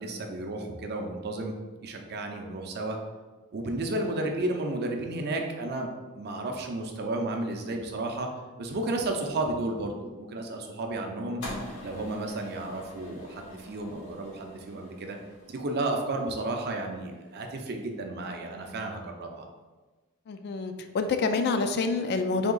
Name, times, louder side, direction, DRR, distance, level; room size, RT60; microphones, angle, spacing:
voice 1, 0.0-1.5 1.8-3.0 3.5-5.9 6.2-8.3 8.6-11.4 11.8-15.2 15.5-19.5, right 2 dB, 50° right, 3 dB, 0.5 m, -32 dB
sound 1, 11.4-17.7, left 1 dB, 80° left, 1.0 m, -45 dB
voice 2, 20.3-22.5, left 4 dB, 50° left, 8 dB, 0.3 m, -27 dB
3.6 x 2.8 x 3.9 m, 1.3 s
head